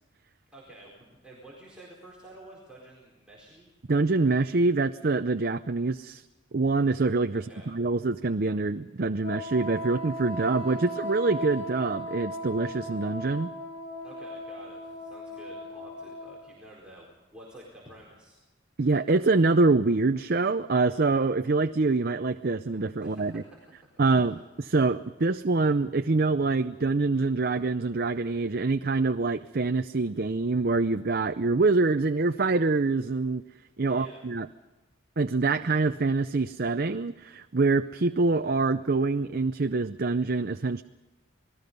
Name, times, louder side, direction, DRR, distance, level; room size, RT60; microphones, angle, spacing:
voice 1, 0.5-3.7 7.3-7.7 14.0-18.4 23.0-23.9 24.2-24.4 33.9-34.3, right 1 dB, 5° right, -6 dB, 4.4 m, -50 dB
voice 2, 3.9-6.2 6.5-13.5 18.8-23.4 24.0-33.4 33.8-34.5 35.2-40.8, right 3 dB, 50° right, 9 dB, 0.6 m, -25 dB
Wind instrument woodwind instrument, 9.2-16.6, equal, 75° left, 6.9 m, -37 dB
28.0 x 19.5 x 5.4 m, 1.2 s
head